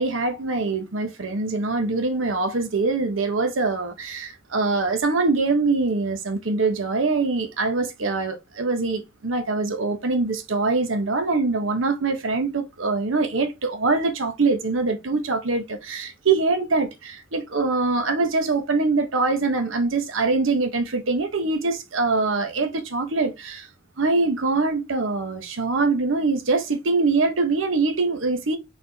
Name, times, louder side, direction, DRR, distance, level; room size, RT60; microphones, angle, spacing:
voice 1, 0.0-23.7 24.0-28.6, right 3 dB, 85° right, 0.9 m, -23 dB
4.2 x 3.5 x 2.8 m
head